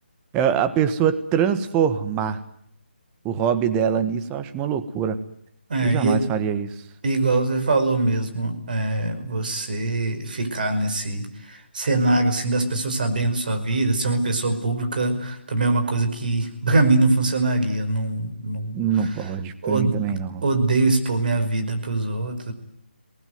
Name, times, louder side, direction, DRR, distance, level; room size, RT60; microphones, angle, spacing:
voice 1, 0.3-2.4 3.2-5.2 5.8-6.7 18.7-20.4, right 8 dB, 15° right, 11 dB, 1.4 m, -23 dB
voice 2, 5.7-6.2 7.0-18.8 19.6-20.0 20.4-22.5, right 2 dB, 50° right, 7 dB, 5.3 m, -23 dB
27.0 x 19.5 x 9.4 m, 0.74 s
figure-of-eight pair, 150°, 6 cm